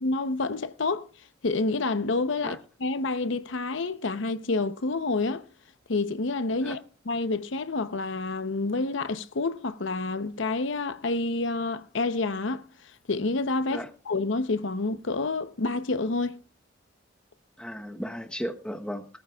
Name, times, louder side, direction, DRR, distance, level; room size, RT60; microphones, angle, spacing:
voice 1, 0.0-1.1 1.4-5.5 5.9-6.8 7.1-12.6 13.1-16.4, left 3 dB, 75° left, 0.8 m, -28 dB
voice 2, 17.6-19.1, equal, 5° left, 1.0 m, -35 dB
19.5 x 14.0 x 2.3 m
head